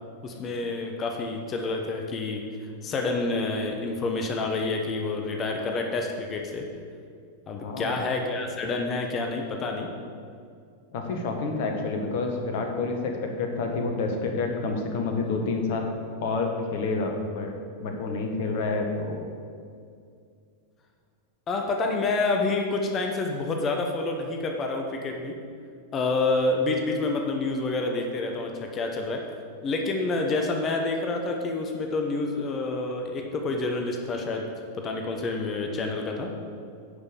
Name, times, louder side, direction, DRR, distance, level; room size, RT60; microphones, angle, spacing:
voice 1, 0.2-2.5 2.8-6.7 7.5-9.9 21.5-25.4 25.9-29.3 29.6-36.3, left 3 dB, 25° left, 3 dB, 1.1 m, -28 dB
voice 2, 7.6-8.0 10.9-15.9 16.2-17.5 17.8-19.2, left 3 dB, 50° left, 3 dB, 1.5 m, -28 dB
10.0 x 5.6 x 7.0 m, 2.3 s
figure-of-eight pair, 90°, 0 cm